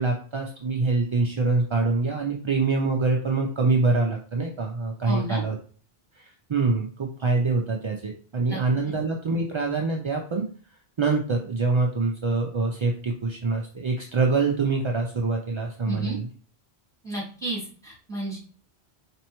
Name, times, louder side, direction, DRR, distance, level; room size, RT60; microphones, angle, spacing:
voice 1, 0.0-5.6 6.1-10.4 11.0-16.3, right 3 dB, 45° right, 1 dB, 0.4 m, -25 dB
voice 2, 5.0-5.4 8.5-8.6 15.9-16.2 17.0-18.4, right 2 dB, 5° left, -6 dB, 2.3 m, -32 dB
4.3 x 3.4 x 2.9 m, 0.42 s
omnidirectional pair, 1.0 m